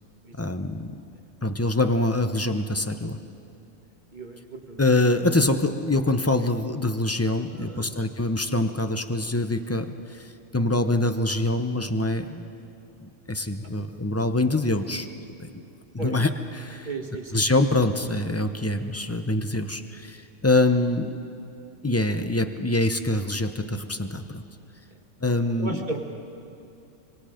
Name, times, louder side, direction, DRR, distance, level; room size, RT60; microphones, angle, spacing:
voice 1, 0.4-1.0 1.4-3.2 4.8-10.3 10.5-12.5 13.0-15.1 15.4-15.6 15.9-16.9 17.3-21.1 21.8-24.4 25.2-25.8, left 2 dB, 15° left, 8 dB, 0.5 m, -25 dB
voice 2, 4.1-4.8 7.5-7.9 16.0-16.2 16.9-17.4 25.6-26.0, right 3 dB, 35° right, 2 dB, 1.9 m, -35 dB
25.5 x 23.5 x 5.1 m, 2.8 s
omnidirectional pair, 1.4 m